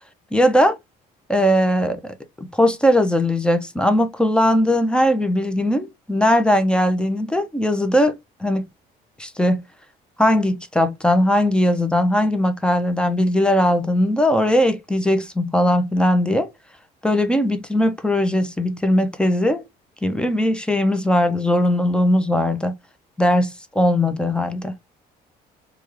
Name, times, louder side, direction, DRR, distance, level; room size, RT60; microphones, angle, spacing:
voice 1, 0.3-0.8 1.3-2.1 2.5-8.6 9.2-9.6 10.2-16.5 17.0-19.6 20.0-22.7 23.2-24.9, left 1 dB, 5° left, 0.6 m, -19 dB
3.4 x 2.4 x 3.0 m
cardioid pair, 110°, 17 cm